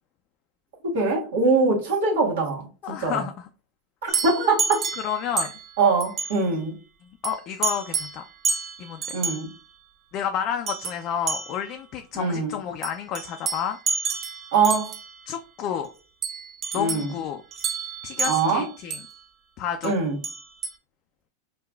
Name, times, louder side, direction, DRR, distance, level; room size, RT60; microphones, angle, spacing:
voice 1, 0.9-3.2 4.0-4.8 5.8-6.7 9.1-9.5 12.1-12.6 14.5-14.9 16.7-17.1 18.2-18.7 19.8-20.2, right 4 dB, 80° right, 1.4 m, -23 dB
voice 2, 2.8-3.5 4.0-4.2 5.0-5.5 7.2-8.3 8.8-9.0 10.1-13.8 15.3-15.9 16.7-17.4 18.0-19.0 19.6-19.9, left 9 dB, 45° left, 0.4 m, -30 dB
sound 1, 4.1-5.7 6.0-6.4 7.2-7.4 7.6-8.2 8.4-9.5 10.7-11.0 11.3-11.7 12.8-15.1 16.2-17.1 17.5-19.1 19.8-19.9 20.2-20.7, right 5 dB, 35° right, 0.5 m, -29 dB
4.7 x 2.4 x 2.3 m
hypercardioid pair, 115°, 0 cm